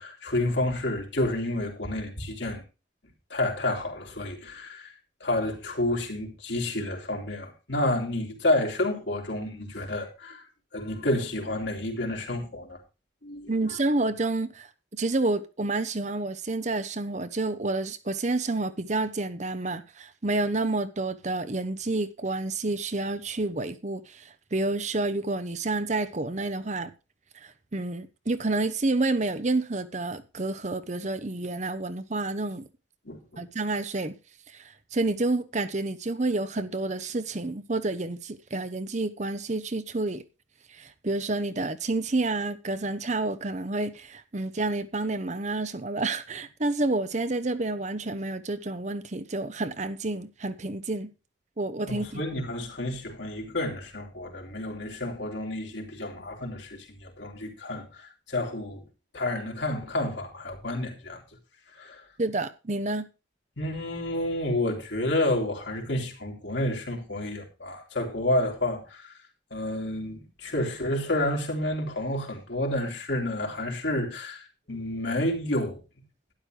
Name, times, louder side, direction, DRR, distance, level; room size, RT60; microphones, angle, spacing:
voice 1, 0.0-2.6 3.3-4.9 5.2-10.5 10.7-12.8 13.2-13.5 33.1-33.4 51.9-58.8 59.1-61.2 61.8-62.0 63.6-69.1 69.5-75.8, left 1 dB, 65° left, 3.5 m, -30 dB
voice 2, 13.5-26.9 27.4-32.7 33.4-34.1 34.5-40.2 40.7-51.1 51.6-52.2 62.2-63.1, right 2 dB, 35° right, 0.8 m, -29 dB
12.5 x 10.5 x 3.3 m
head